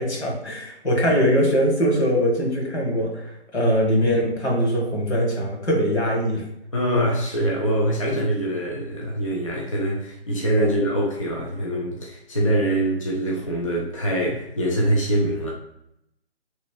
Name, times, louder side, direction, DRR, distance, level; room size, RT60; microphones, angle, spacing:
voice 1, 0.0-6.4 10.6-10.8, equal, 75° left, -1 dB, 1.3 m, -22 dB
voice 2, 6.7-15.5, right 1 dB, 30° left, -3 dB, 0.4 m, -24 dB
3.8 x 3.1 x 2.2 m, 0.79 s
figure-of-eight pair, 150°, 33 cm